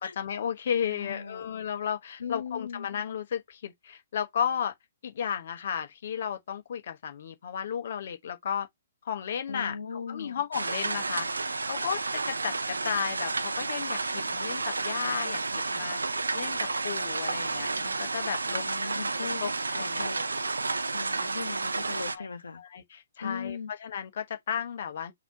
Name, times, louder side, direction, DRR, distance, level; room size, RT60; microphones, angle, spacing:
voice 1, 0.0-4.7 5.0-8.7 9.0-18.6 19.4-20.1 22.0-22.3 22.5-25.1, left 8 dB, 55° left, 1.0 m, -34 dB
voice 2, 0.8-1.5 2.2-2.9 9.5-10.4 18.5-19.5 19.8-20.2 20.9-22.6 23.2-23.7, left 5 dB, 80° left, 1.2 m, -38 dB
sound 1, 10.5-22.2, right 3 dB, 85° right, 0.6 m, -31 dB
4.1 x 2.8 x 4.6 m
hypercardioid pair, 130°, 0 cm